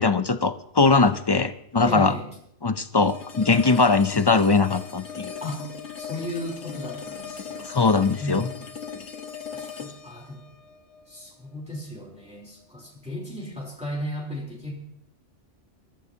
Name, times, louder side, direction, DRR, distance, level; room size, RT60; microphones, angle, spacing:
voice 1, 0.0-2.1 2.6-5.4 7.6-8.5, left 4 dB, 40° left, 11 dB, 0.3 m, -21 dB
voice 2, 1.9-2.3 5.4-5.6 6.0-7.7 8.2-8.6 9.5-10.4 11.1-14.7, left 1 dB, 5° right, -3 dB, 3.4 m, -35 dB
sound 1, 3.0-12.1, left 7 dB, 70° left, 1.6 m, -39 dB
22.0 x 13.5 x 2.8 m, 0.70 s
omnidirectional pair, 1.2 m